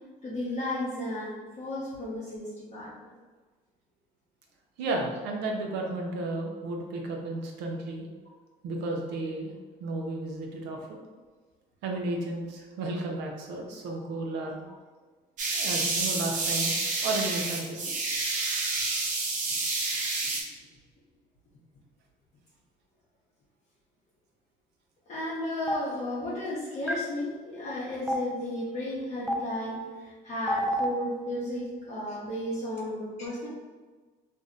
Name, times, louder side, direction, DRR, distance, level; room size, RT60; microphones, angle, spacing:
voice 1, 0.2-2.9 25.1-33.5, left 1 dB, 40° left, -8 dB, 0.7 m, -34 dB
voice 2, 4.8-8.1 8.6-9.5 9.8-11.0 11.8-14.6 15.5-16.7 17.0-17.9, right 2 dB, 85° right, 1 dB, 0.6 m, -33 dB
sound 1, 15.4-20.4, right 3 dB, 50° right, 0.6 m, -29 dB
Stream, 25.7-25.8 26.9-27.0 28.1-28.2 29.3-29.4 30.5-30.8, equal, ahead, 0.3 m, -26 dB
2.6 x 2.0 x 3.7 m, 1.4 s
cardioid pair, 110°, 17 cm